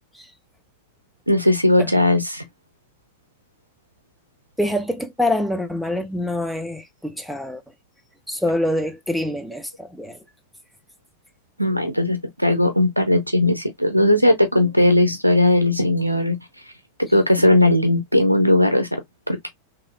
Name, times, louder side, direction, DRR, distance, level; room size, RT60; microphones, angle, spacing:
voice 1, 1.3-2.5 11.6-16.4 17.0-19.0 19.3-19.5, left 1 dB, 90° right, 0.7 m, -18 dB
voice 2, 4.6-7.6 8.3-10.2, left 1 dB, ahead, 0.6 m, -25 dB
3.1 x 2.7 x 2.4 m
figure-of-eight pair, 90°, 0 cm